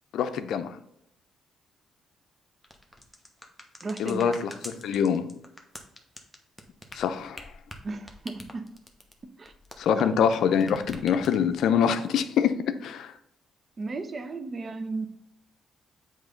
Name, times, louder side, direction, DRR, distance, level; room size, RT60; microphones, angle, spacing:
voice 1, 0.1-0.8 4.0-5.3 6.9-7.4 9.8-13.1, left 7 dB, 75° left, 10 dB, 0.5 m, -25 dB
sound 1, 2.6-10.4 10.6-11.6, left 1 dB, 5° left, 1.1 m, -45 dB
voice 2, 3.8-4.5 7.8-8.7 9.2-9.5 9.9-10.1 13.8-15.1, right 3 dB, 40° right, 8 dB, 0.8 m, -35 dB
7.6 x 3.2 x 5.1 m, 0.78 s
cardioid pair, 90°, 0 cm